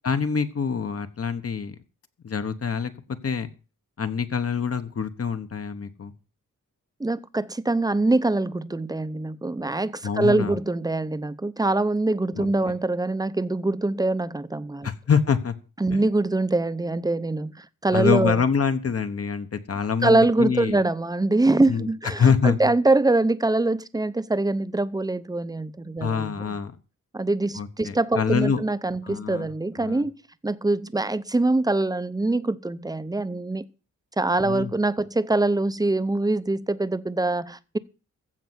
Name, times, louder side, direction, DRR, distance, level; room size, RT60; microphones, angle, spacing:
voice 1, 0.0-1.7 2.2-2.9 3.2-3.5 4.0-6.1 10.0-10.6 12.3-12.5 14.8-15.5 15.9-16.0 17.9-20.8 21.6-21.9 22.2-22.6 26.0-26.7 27.6-28.6 29.0-29.5 29.8-30.0 34.4-34.7, left 6 dB, 50° left, 1.1 m, -25 dB
voice 2, 7.0-14.9 15.8-18.4 20.0-26.5 27.1-30.1 30.4-33.6 34.2-37.8, right 2 dB, 10° right, 0.6 m, -24 dB
15.0 x 5.5 x 7.9 m
wide cardioid pair, 120°, 31 cm